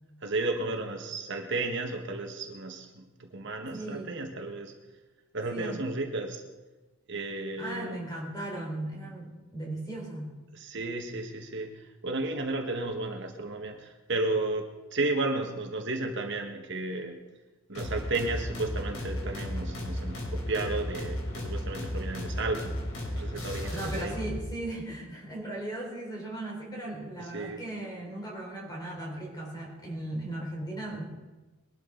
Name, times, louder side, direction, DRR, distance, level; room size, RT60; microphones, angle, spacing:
voice 1, 0.2-4.7 5.3-6.4 7.1-8.0 10.5-17.2 17.7-22.8 23.0-24.2 27.2-27.6, right 2 dB, 55° right, 3 dB, 1.5 m, -33 dB
voice 2, 3.7-4.2 5.5-5.8 7.6-10.4 23.7-31.0, right 1 dB, 20° left, -1 dB, 4.0 m, -37 dB
sound 1, 17.7-24.4, left 1 dB, 90° left, 3.8 m, -34 dB
21.5 x 12.5 x 3.9 m, 1.1 s
head